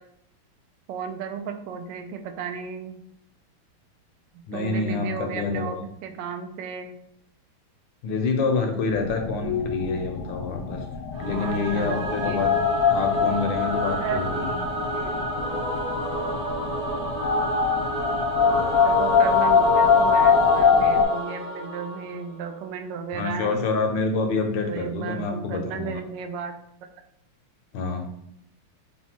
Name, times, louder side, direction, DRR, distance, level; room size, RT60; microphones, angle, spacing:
voice 1, 0.9-3.0 4.5-6.9 11.3-12.4 13.9-14.2 14.9-15.1 18.4-23.6 24.7-26.6, right 7 dB, 75° right, 6 dB, 1.0 m, -34 dB
voice 2, 4.5-5.8 8.0-10.8 11.2-12.5 12.9-14.5 18.5-18.8 23.1-26.0 27.7-28.1, left 4 dB, 70° left, 3 dB, 1.3 m, -27 dB
sound 1, 8.9-21.0, left 6 dB, 90° left, 1.5 m, -23 dB
Singing / Musical instrument, 11.1-22.4, right 2 dB, 60° right, 1.3 m, -29 dB
4.1 x 2.2 x 4.3 m, 0.76 s
omnidirectional pair, 2.3 m